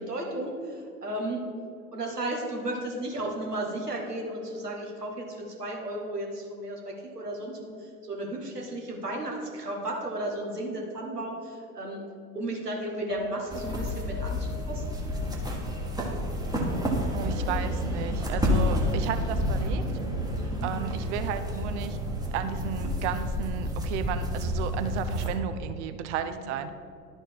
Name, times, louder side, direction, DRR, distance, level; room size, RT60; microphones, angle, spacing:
voice 1, 0.0-1.4 1.9-12.0 12.3-14.8 20.3-20.7 26.1-26.4, right 1 dB, 85° right, 0 dB, 1.4 m, -34 dB
Piano, 13.1-17.6 17.9-18.1 18.5-18.6, left 2 dB, 70° left, 1.6 m, -43 dB
sound 1, 13.5-25.3, left 1 dB, 10° right, 1.2 m, -29 dB
voice 2, 17.1-19.8 20.6-22.0 22.3-26.7, right 9 dB, 50° right, 9 dB, 0.6 m, -33 dB
11.0 x 4.4 x 4.5 m, 2.3 s
figure-of-eight pair, 80°, 46 cm